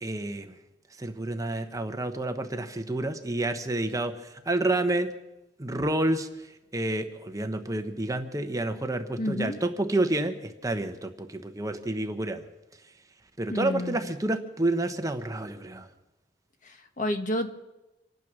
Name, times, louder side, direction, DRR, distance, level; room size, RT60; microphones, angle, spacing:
voice 1, 0.0-0.5 1.0-5.1 5.6-6.3 6.7-12.4 13.4-15.9, right 2 dB, 20° right, 7 dB, 0.9 m, -29 dB
voice 2, 9.2-9.6 13.5-14.0 16.6-17.6, left 1 dB, 45° left, 6 dB, 1.4 m, -30 dB
25.5 x 9.2 x 6.1 m, 0.99 s
head